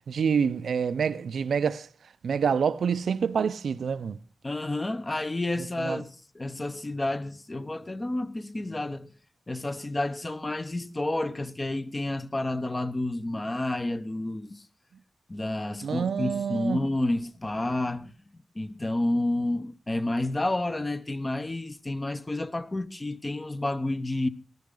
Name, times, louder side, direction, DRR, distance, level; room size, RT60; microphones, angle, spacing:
voice 1, 0.1-1.9 2.2-4.2 5.8-6.0 15.8-16.8, right 6 dB, 85° right, 0.6 m, -27 dB
voice 2, 4.4-9.1 9.5-14.6 15.3-24.3, left 2 dB, 25° left, 0.9 m, -30 dB
14.5 x 13.5 x 3.9 m
wide cardioid pair, 80°, 0 cm